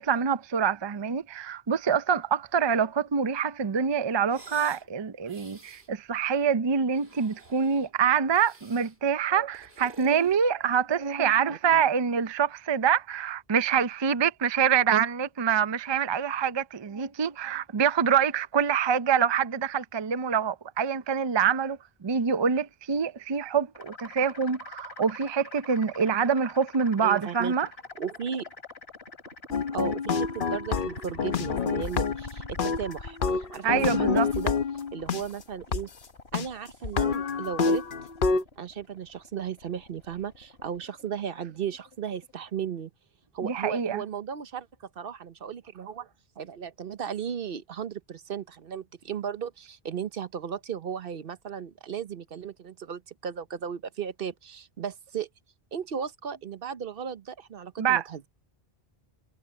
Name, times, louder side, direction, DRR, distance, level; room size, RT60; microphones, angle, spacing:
voice 1, 0.0-27.7 33.6-34.3 43.4-44.0 57.8-58.0, right 7 dB, 35° right, 0.5 m, -25 dB
sound 1, 4.2-4.9 5.2-5.9 6.8-7.9 8.3-9.0 9.4-10.9, right 2 dB, 85° right, 3.9 m, -51 dB
voice 2, 11.5-11.8 27.0-27.6 28.0-28.5 29.7-34.5 34.9-35.9 36.3-37.8 38.6-42.9 43.3-46.1 46.4-55.3 55.7-58.3, right 7 dB, 65° right, 1.0 m, -35 dB
sound 2, 23.7-42.5, left 2 dB, 90° left, 2.9 m, -45 dB
sound 3, 29.5-32.3 32.6-35.2 35.7-35.8 36.3-36.5 36.8-38.4, left 5 dB, 60° left, 1.0 m, -27 dB
omnidirectional pair, 1.0 m